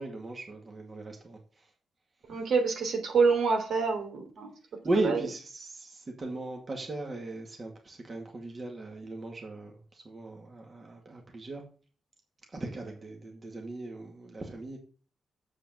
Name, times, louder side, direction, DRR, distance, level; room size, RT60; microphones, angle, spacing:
voice 1, 0.0-1.7 2.3-2.5 4.8-11.6 12.5-14.8, right 2 dB, 30° right, 2.2 m, -37 dB
voice 2, 2.3-4.5 5.0-5.1, right 4 dB, 70° right, 3.3 m, -26 dB
7.7 x 6.6 x 8.0 m
wide cardioid pair, 125°, 0 cm